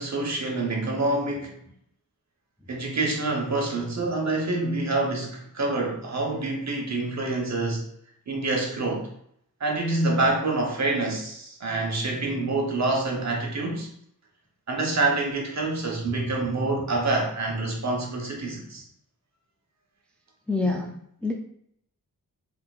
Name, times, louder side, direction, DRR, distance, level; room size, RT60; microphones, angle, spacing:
voice 1, 0.0-1.5 2.7-7.9 8.3-9.1 9.6-13.9 14.7-18.8, right 2 dB, 50° right, 0 dB, 1.0 m, -26 dB
voice 2, 20.5-21.3, left 3 dB, 5° left, 0 dB, 0.4 m, -28 dB
3.7 x 3.5 x 2.4 m, 0.68 s
wide cardioid pair, 90°, 35 cm